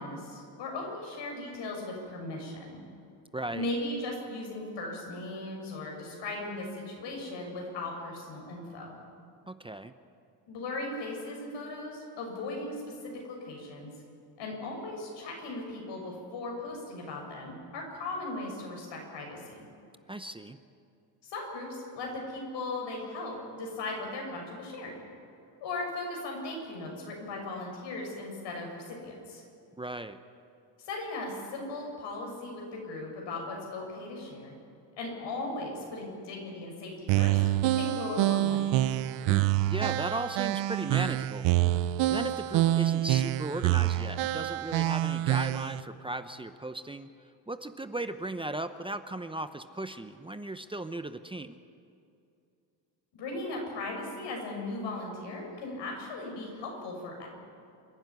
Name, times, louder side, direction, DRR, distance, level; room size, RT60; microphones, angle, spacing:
voice 1, 0.0-2.8 3.5-8.9 10.5-12.8 13.3-13.9 14.4-19.7 21.2-21.7 21.9-25.0 25.6-29.4 30.8-34.5 35.0-37.4 37.7-38.7 53.1-57.3, left 2 dB, 80° left, 0 dB, 6.9 m, -37 dB
voice 2, 3.3-3.7 9.5-9.9 20.1-20.6 29.8-30.2 39.3-47.1 47.5-51.6, right 2 dB, 10° right, 10 dB, 0.8 m, -37 dB
sound 1, 37.1-45.8, right 14 dB, 90° right, 0.7 m, -27 dB
27.5 x 12.0 x 9.5 m, 2.5 s
cardioid pair, 105°, 42 cm